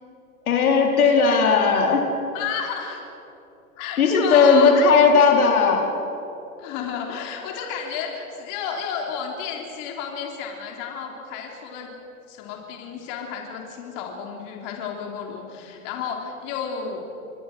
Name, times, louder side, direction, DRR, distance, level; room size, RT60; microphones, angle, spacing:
voice 1, 0.5-2.1 4.0-5.9, left 5 dB, 85° left, 1 dB, 4.4 m, -17 dB
voice 2, 2.3-3.0 3.8-5.0 6.6-11.9 12.3-17.0, left 7 dB, 45° left, 1 dB, 3.7 m, -32 dB
26.5 x 21.0 x 6.2 m, 2.8 s
hypercardioid pair, 120°, 42 cm